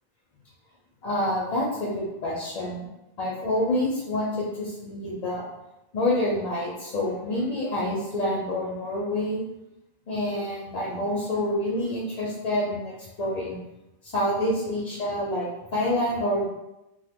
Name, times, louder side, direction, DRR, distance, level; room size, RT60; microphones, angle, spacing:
voice 1, 1.0-2.9 3.2-5.4 5.9-9.4 10.1-13.6 14.0-16.5, left 1 dB, 50° left, -4 dB, 0.5 m, -27 dB
2.9 x 2.1 x 3.4 m, 0.96 s
omnidirectional pair, 1.0 m